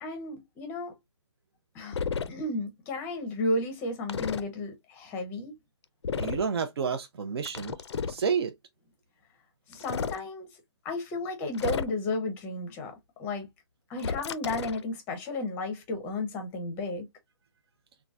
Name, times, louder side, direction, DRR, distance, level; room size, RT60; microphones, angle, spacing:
voice 1, 0.0-0.9 1.7-2.0 2.3-5.5 9.7-10.5 10.8-12.9 13.2-13.5 13.9-17.1, left 2 dB, 15° left, 0.6 m, -33 dB
sound 1, 1.9-2.3 4.1-4.4 6.0-6.5 7.4-8.2 9.7-10.2 11.5-12.1 14.0-14.8, left 6 dB, 70° left, 0.5 m, -32 dB
voice 2, 6.2-7.8 8.1-8.5, right 6 dB, 60° right, 0.5 m, -29 dB
3.8 x 2.2 x 2.3 m
hypercardioid pair, 165°, 15 cm